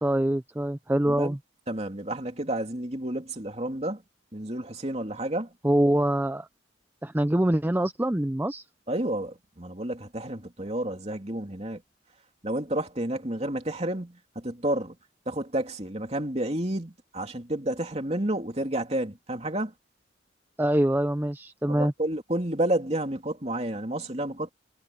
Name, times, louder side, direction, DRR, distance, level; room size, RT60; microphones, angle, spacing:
voice 1, 0.0-1.4 5.6-6.5 7.0-8.6 20.6-21.9, right 1 dB, 10° right, 0.4 m, -24 dB
voice 2, 1.1-1.4 1.7-4.0 4.3-5.5 8.9-11.8 12.4-14.9 15.3-19.7 21.7-24.5, right 1 dB, 35° right, 3.0 m, -30 dB
head